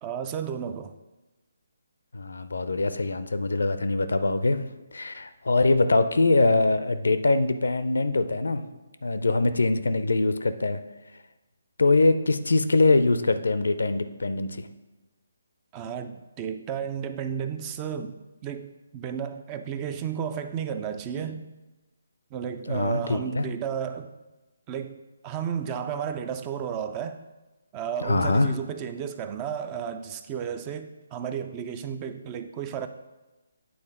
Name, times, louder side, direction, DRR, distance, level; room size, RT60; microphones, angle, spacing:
voice 1, 0.0-0.9 15.7-18.2 18.4-21.5 22.3-24.1 24.7-27.2 27.7-32.9, right 8 dB, 25° right, 9 dB, 0.4 m, -33 dB
voice 2, 2.1-4.6 4.9-8.6 9.0-10.8 11.8-14.7 22.7-23.5 28.0-28.5, left 3 dB, 75° left, 11 dB, 0.4 m, -23 dB
8.6 x 3.9 x 3.7 m, 1.1 s
figure-of-eight pair, 145°, 0 cm